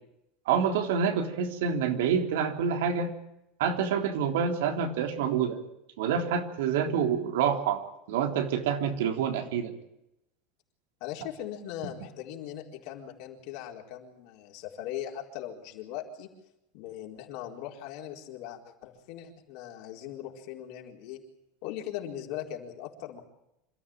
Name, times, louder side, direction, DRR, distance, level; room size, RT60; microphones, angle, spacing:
voice 1, 0.5-3.1 3.6-5.6 6.0-7.8 8.1-9.7, right 7 dB, 85° right, 4 dB, 3.5 m, -27 dB
voice 2, 11.0-16.3 16.7-21.2 21.6-23.2, left 11 dB, 55° left, 1 dB, 4.4 m, -40 dB
27.0 x 14.0 x 9.0 m, 0.87 s
supercardioid pair, 165°, 0 cm